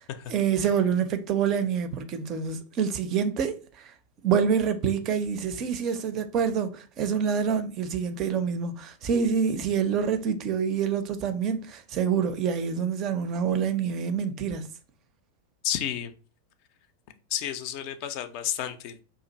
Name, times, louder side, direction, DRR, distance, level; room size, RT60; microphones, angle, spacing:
voice 1, 0.3-3.9 4.2-14.7, right 7 dB, 35° right, 0.4 m, -26 dB
voice 2, 15.6-16.1 17.3-19.0, left 10 dB, 45° left, 0.4 m, -31 dB
2.5 x 2.5 x 3.9 m
figure-of-eight pair, 90°, 0 cm